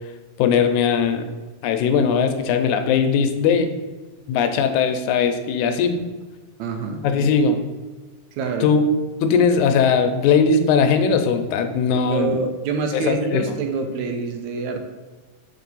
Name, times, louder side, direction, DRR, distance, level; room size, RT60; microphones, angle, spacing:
voice 1, 0.4-1.3 1.6-3.7 4.3-6.0 7.0-7.6 8.6-8.8 9.2-12.4 12.9-13.5, left 6 dB, 85° left, 7 dB, 2.0 m, -19 dB
voice 2, 6.6-7.0 8.3-8.7 12.1-14.8, right 4 dB, 80° right, 5 dB, 1.9 m, -26 dB
5.7 x 4.5 x 4.0 m, 1.3 s
omnidirectional pair, 3.4 m